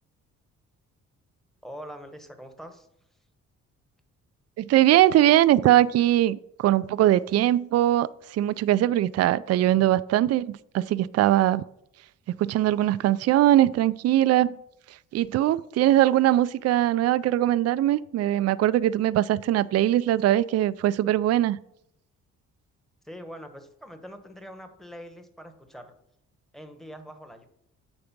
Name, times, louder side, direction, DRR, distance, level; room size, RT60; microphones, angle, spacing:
voice 1, 1.6-2.9 23.0-25.9 26.5-27.5, equal, ahead, 1.2 m, -43 dB
voice 2, 4.6-11.6 12.4-14.6 15.1-21.6, right 13 dB, 55° right, 0.4 m, -21 dB
8.7 x 4.9 x 5.9 m
cardioid pair, 90°, 30 cm